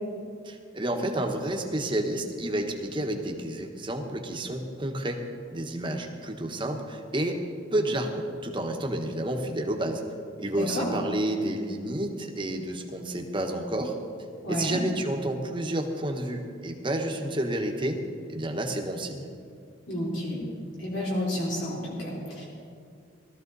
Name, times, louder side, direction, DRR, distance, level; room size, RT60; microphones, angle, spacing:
voice 1, 0.4-5.2 5.5-7.4 7.7-10.0 10.4-14.0 14.5-18.0 18.3-19.3, right 1 dB, 25° right, 3 dB, 1.3 m, -30 dB
voice 2, 10.5-10.8 14.4-14.8 19.9-20.4 20.8-22.5, left 1 dB, 65° left, -5 dB, 4.0 m, -30 dB
18.5 x 14.0 x 4.1 m, 2.3 s
head